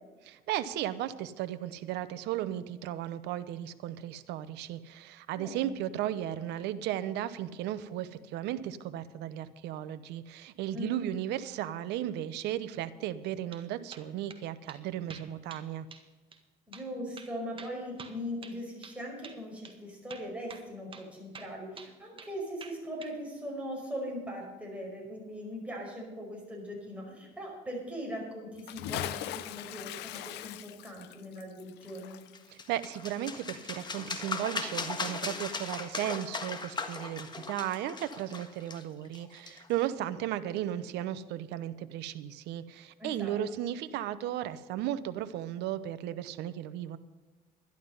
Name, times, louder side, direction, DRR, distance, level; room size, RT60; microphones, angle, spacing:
voice 1, 0.2-15.9 32.5-47.0, right 12 dB, 85° right, 13 dB, 0.8 m, -35 dB
voice 2, 5.3-5.8 10.7-11.0 16.7-32.1 43.0-43.4, equal, 5° right, -2 dB, 5.2 m, -40 dB
sound 1, 13.2-13.6 13.9-14.4 14.7-14.8 15.1-15.7 15.9-16.1 16.3-16.4 16.7-16.9 17.2-19.0 19.2-19.4 19.6-19.8 20.1-20.7 20.9-21.1 21.3-22.3 22.6-23.2, right 5 dB, 30° right, 1.7 m, -48 dB
Bathtub (filling or washing) / Splash splatter, 28.5-33.5 33.8-33.9, left 12 dB, 85° left, 0.7 m, -40 dB
sound 2, 32.3-39.9, left 4 dB, 25° left, 1.5 m, -38 dB
11.5 x 11.5 x 5.4 m, 1.3 s
cardioid pair, 110°, 17 cm